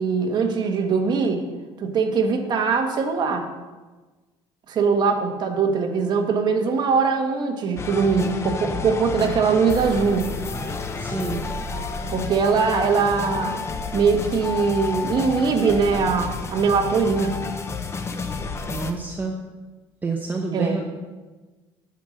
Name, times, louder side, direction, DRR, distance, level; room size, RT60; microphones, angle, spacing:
voice 1, 0.0-1.4 1.8-3.5 4.7-10.3 12.1-13.7 13.9-17.3 20.5-20.8, right 5 dB, 45° right, 4 dB, 1.5 m, -21 dB
sound 1, 7.8-18.9, left 4 dB, 25° left, 0.9 m, -30 dB
voice 2, 11.0-11.5 18.7-19.4 20.0-20.8, right 4 dB, 20° right, 2 dB, 0.9 m, -28 dB
9.2 x 6.7 x 6.6 m, 1.3 s
cardioid pair, 130°, 10 cm